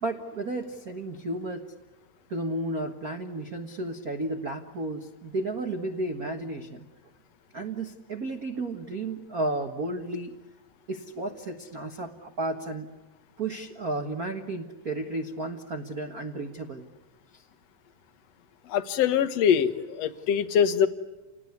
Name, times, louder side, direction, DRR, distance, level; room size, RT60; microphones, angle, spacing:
voice 1, 0.0-1.6 2.3-6.9 7.5-10.3 10.9-12.9 13.4-16.8 17.3-17.4, right 2 dB, 75° right, 4 dB, 0.8 m, -33 dB
voice 2, 18.7-20.9, left 8 dB, 60° left, 9 dB, 1.9 m, -23 dB
29.5 x 19.5 x 9.5 m, 1.2 s
omnidirectional pair, 4.1 m